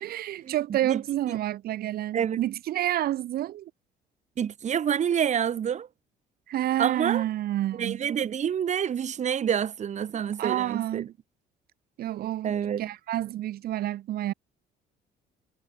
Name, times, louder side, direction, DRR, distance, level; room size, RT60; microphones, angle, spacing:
voice 1, 0.0-3.7 6.5-8.0 10.4-11.1 12.0-14.3, right 13 dB, 65° right, 1.2 m, -29 dB
voice 2, 4.4-5.9 6.8-7.2 7.8-11.0 12.4-12.9, right 8 dB, 45° right, 1.8 m, -27 dB
cardioid pair, 110°, 17 cm